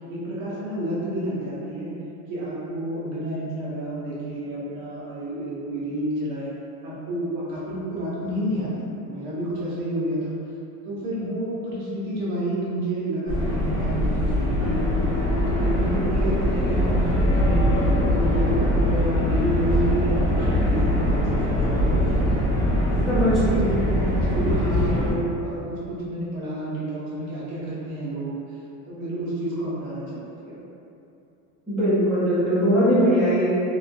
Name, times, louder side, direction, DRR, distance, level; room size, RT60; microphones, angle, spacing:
voice 1, 0.1-1.9 2.3-6.5 6.8-10.3 10.8-14.9 15.3-17.7 18.1-22.6 23.0-28.4 28.9-30.6, right 1 dB, 40° right, -8 dB, 0.6 m, -30 dB
sound 1, 13.3-25.1, left 1 dB, 15° right, 1.0 m, -22 dB
voice 2, 23.1-23.9 31.7-33.5, equal, ahead, -15 dB, 0.4 m, -20 dB
3.0 x 2.2 x 2.4 m, 2.7 s
supercardioid pair, 160°, 44 cm